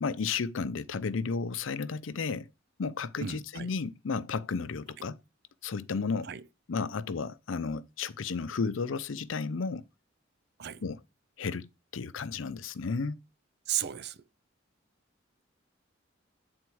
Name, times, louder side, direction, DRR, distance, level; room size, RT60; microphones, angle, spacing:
voice 1, 0.0-2.5 2.8-5.2 5.6-6.3 6.7-9.8 10.8-11.0 11.4-13.2, left 5 dB, 80° left, 0.5 m, -33 dB
voice 2, 3.2-3.7 6.2-6.4 10.6-10.8 13.7-14.2, right 10 dB, 55° right, 0.5 m, -34 dB
8.5 x 4.4 x 4.6 m
head